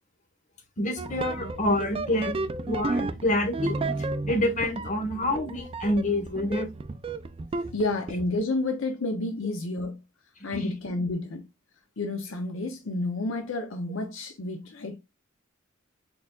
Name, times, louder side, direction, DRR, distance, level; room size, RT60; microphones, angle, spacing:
voice 1, 0.8-3.8 4.3-6.7 10.5-10.7, left 1 dB, 40° left, 1.2 m, -27 dB
sound 1, 1.0-7.8 8.1-8.4, right 2 dB, 30° right, 0.4 m, -33 dB
voice 2, 7.7-10.0 10.4-11.5 12.0-15.0, left 2 dB, 70° left, 0.7 m, -30 dB
4.3 x 3.9 x 2.3 m
head